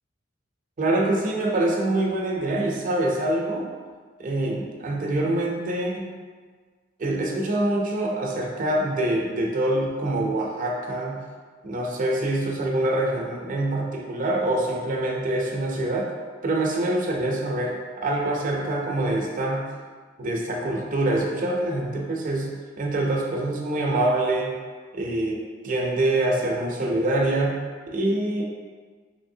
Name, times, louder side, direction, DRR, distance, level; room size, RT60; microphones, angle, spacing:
voice 1, 0.8-3.7 4.2-6.2 7.0-11.2 11.6-16.1 16.4-19.6 20.2-22.5 22.8-24.6 24.9-27.6 27.9-28.4, right 1 dB, 45° right, -1 dB, 0.5 m, -25 dB
3.3 x 3.0 x 2.7 m, 1.5 s
head